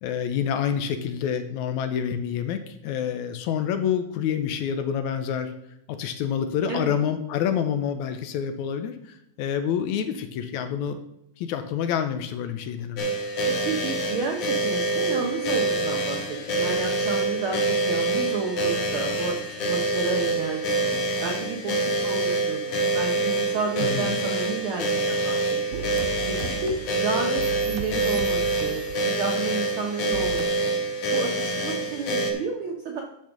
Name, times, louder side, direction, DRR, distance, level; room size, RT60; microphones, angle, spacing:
voice 1, 0.0-5.5 5.9-11.0 11.4-13.1 23.8-24.1, left 8 dB, 80° left, 8 dB, 1.9 m, -27 dB
sound 1, 13.0-32.3, right 2 dB, 60° left, 2.1 m, -26 dB
voice 2, 13.5-17.6 17.9-25.4 25.7-25.8 26.3-28.8 29.2-30.7 31.1-33.0, right 4 dB, 75° right, 1 dB, 1.2 m, -31 dB
sound 2, 25.7-29.4 30.1-30.4, right 9 dB, 90° right, 2.3 m, -37 dB
10.5 x 4.4 x 5.9 m, 0.81 s
omnidirectional pair, 3.6 m